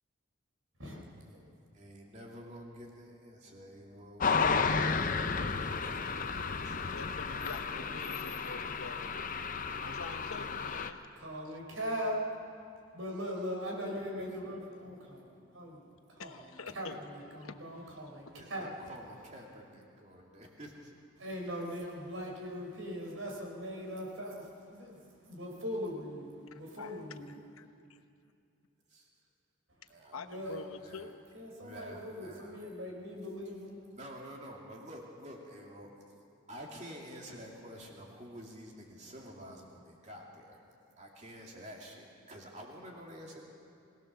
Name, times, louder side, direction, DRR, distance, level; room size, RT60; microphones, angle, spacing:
voice 1, 0.8-1.4 6.8-7.0 11.2-12.3 12.9-16.5 16.7-18.7 21.2-27.3 30.2-30.6 31.3-33.8, equal, 70° right, 0 dB, 4.5 m, -40 dB
voice 2, 1.7-4.3 4.8-6.9 18.3-20.9 28.9-29.1 29.9-31.1 31.6-32.6 33.9-35.9 36.5-40.6 41.0-43.4, equal, 35° right, -1 dB, 2.8 m, -49 dB
sound 1, 4.2-10.9, left 5 dB, 40° left, 0.7 m, -33 dB
voice 3, 6.6-9.5 9.8-11.0 16.2-17.0 17.4-17.6 26.8-27.2 27.5-28.0 30.1-31.2, left 4 dB, 85° left, 8 dB, 1.0 m, -46 dB
22.0 x 18.5 x 6.8 m, 2.4 s
head